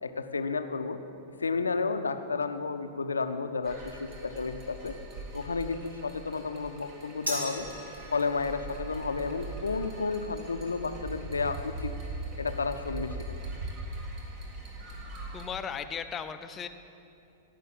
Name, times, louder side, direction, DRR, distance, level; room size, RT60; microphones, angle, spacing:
voice 1, 0.0-1.0 1.4-4.9 5.3-7.7 8.1-11.9 12.4-13.4, left 4 dB, 75° left, 8 dB, 0.6 m, -32 dB
sound 1, 3.6-15.5, right 2 dB, 35° right, 1.8 m, -41 dB
sound 2, 7.3-13.8, equal, 75° right, 3.3 m, -43 dB
voice 2, 15.3-16.7, left 7 dB, 20° left, 9 dB, 0.6 m, -36 dB
16.5 x 5.8 x 7.5 m, 2.7 s
figure-of-eight pair, 100°, 0 cm